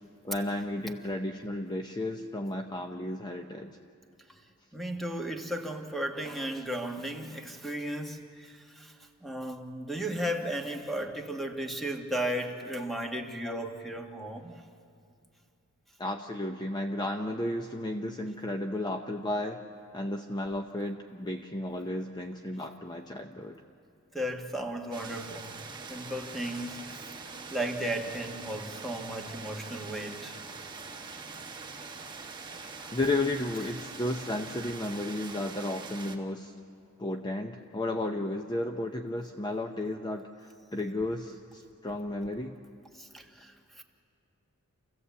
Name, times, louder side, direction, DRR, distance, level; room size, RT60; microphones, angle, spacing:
voice 1, 0.2-3.8 13.4-13.5 16.0-19.6 19.9-23.6 32.9-36.5 37.0-42.6, left 1 dB, 20° left, 4 dB, 0.7 m, -33 dB
voice 2, 4.7-8.9 9.2-14.6 24.1-25.6 25.9-26.8 27.5-30.3 32.8-32.9 43.0-43.8, right 1 dB, ahead, 3 dB, 1.4 m, -35 dB
sound 1, 24.9-36.2, right 4 dB, 20° right, 1.2 m, -43 dB
27.5 x 15.5 x 8.3 m, 2.4 s
head